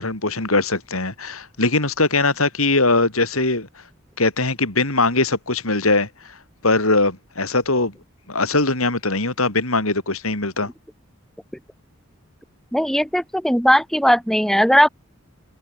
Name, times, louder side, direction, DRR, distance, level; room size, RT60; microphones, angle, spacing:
voice 1, 0.0-3.7 4.2-6.3 6.6-7.9 8.3-10.7, left 3 dB, 90° left, 6.5 m, -21 dB
voice 2, 12.7-14.9, equal, ahead, 5.4 m, -17 dB
head